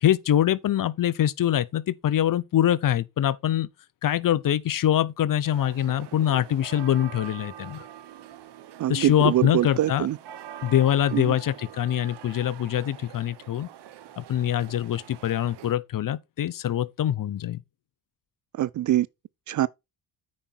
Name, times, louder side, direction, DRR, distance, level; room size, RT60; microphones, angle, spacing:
voice 1, 0.0-3.7 4.0-7.8 8.9-10.1 10.6-13.7 14.2-17.6, left 11 dB, 45° left, 0.7 m, -24 dB
sound 1, 5.4-15.7, right 11 dB, 60° right, 1.0 m, -44 dB
voice 2, 8.8-10.2 11.1-11.3 18.6-19.1 19.5-19.7, right 13 dB, 40° right, 0.4 m, -24 dB
8.7 x 5.3 x 4.4 m
hypercardioid pair, 45°, 47 cm